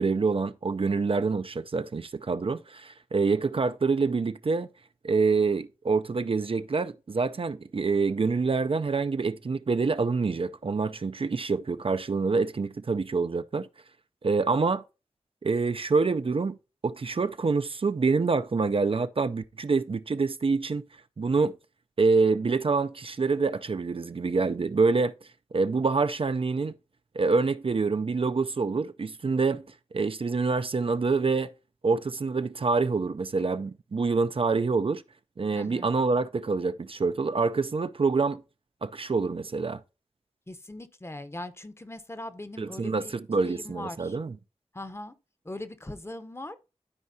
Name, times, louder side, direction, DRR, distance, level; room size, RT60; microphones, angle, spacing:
voice 1, 0.0-4.7 5.0-13.7 14.2-14.8 15.4-16.6 16.8-20.8 21.2-21.6 22.0-25.1 25.5-26.7 27.2-29.6 29.9-31.5 31.8-35.0 35.4-38.4 38.8-39.8 42.6-43.0 43.3-44.3, right 4 dB, 50° right, 0.4 m, -26 dB
voice 2, 35.5-35.9 40.5-43.2 43.4-44.2 44.7-45.1 45.4-46.6, left 1 dB, 20° left, 0.8 m, -40 dB
12.5 x 4.6 x 2.7 m
wide cardioid pair, 80°, 12 cm